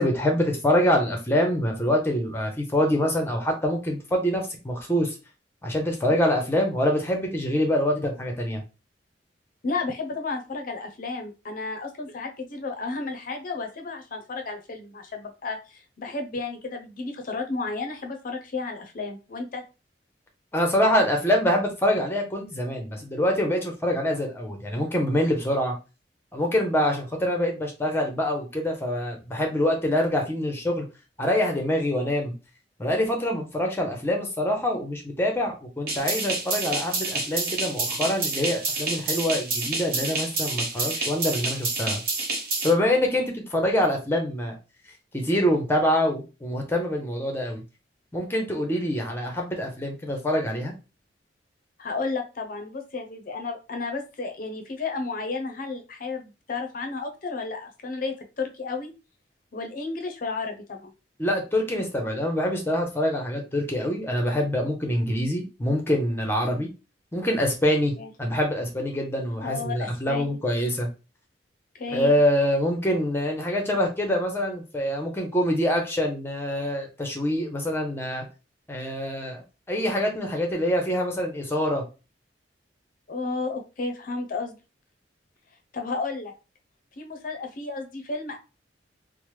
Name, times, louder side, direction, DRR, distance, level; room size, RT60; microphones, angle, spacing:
voice 1, 0.0-5.2 5.6-8.6 20.5-25.7 26.3-30.9 31.2-32.3 32.8-42.0 42.6-44.6 45.1-47.6 48.1-50.7 61.2-66.7 67.1-67.9 68.2-70.9 71.9-78.2 78.7-81.8, left 1 dB, 15° left, 2 dB, 0.7 m, -25 dB
voice 2, 9.6-19.6 51.8-58.9 59.5-60.9 68.0-68.1 69.4-70.3 71.7-72.2 83.1-84.6 85.7-86.3 87.0-88.4, left 3 dB, 50° left, 4 dB, 0.5 m, -32 dB
sound 1, 35.9-42.7, right 3 dB, 55° right, 0.9 m, -28 dB
3.0 x 2.0 x 3.1 m, 0.30 s
head